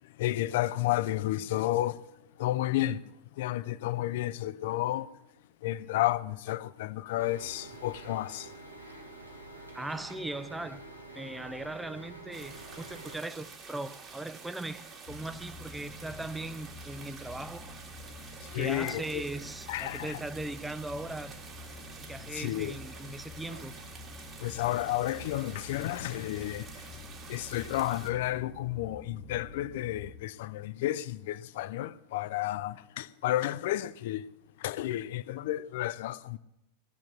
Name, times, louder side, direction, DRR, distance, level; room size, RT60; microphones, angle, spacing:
voice 1, 0.2-2.0 2.4-3.0 3.4-5.1 5.6-8.5 18.5-19.2 19.7-20.2 22.3-22.7 24.4-26.9 27.3-34.2 34.6-36.4, left 15 dB, 50° left, 0.6 m, -31 dB
sound 1, 7.2-13.2, right 2 dB, 85° right, 2.0 m, -47 dB
voice 2, 9.7-10.8 11.2-17.8 18.5-21.4 22.0-23.7, right 2 dB, 5° right, 0.6 m, -39 dB
sound 2, 12.3-28.1, right 5 dB, 30° right, 2.1 m, -48 dB
sound 3, 15.1-30.1, left 2 dB, 25° left, 1.0 m, -48 dB
16.0 x 7.4 x 8.5 m
figure-of-eight pair, 90°, 0 cm